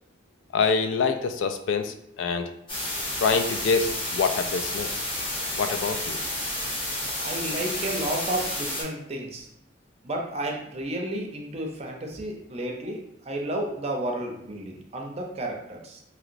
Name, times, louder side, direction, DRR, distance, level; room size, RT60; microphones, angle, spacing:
voice 1, 0.5-2.5 3.2-4.9 5.6-6.2, left 5 dB, 85° left, 8 dB, 0.3 m, -25 dB
sound 1, 2.7-8.8, left 1 dB, 25° left, 0.8 m, -31 dB
voice 2, 7.2-9.5 10.0-16.0, right 1 dB, 35° right, 1 dB, 0.5 m, -32 dB
2.9 x 2.9 x 2.5 m, 0.80 s
head